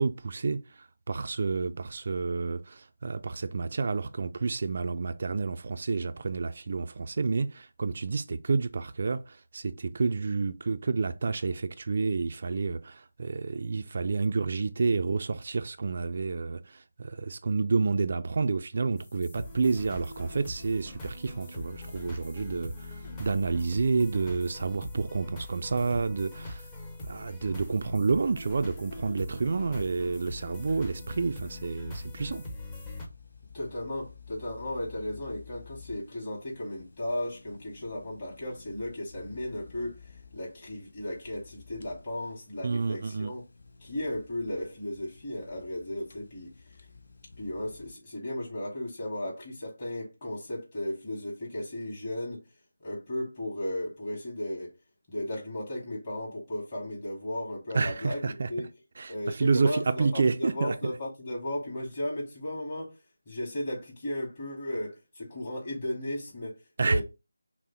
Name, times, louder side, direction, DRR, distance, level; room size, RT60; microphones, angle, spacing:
voice 1, 0.0-26.7 27.0-32.4 42.6-43.3 57.7-58.5 59.0-60.9 66.8-67.0, right 4 dB, 45° right, 0.4 m, -29 dB
sound 1, 19.0-33.1, left 1 dB, 15° left, 0.8 m, -42 dB
sound 2, 29.4-47.9, left 5 dB, 55° left, 0.8 m, -53 dB
voice 2, 33.5-43.4 43.8-46.9 47.4-52.4 52.8-54.7 55.1-58.7 59.1-63.0 63.3-67.0, left 1 dB, 35° left, 2.6 m, -35 dB
6.1 x 2.1 x 4.2 m
figure-of-eight pair, 165°, 0 cm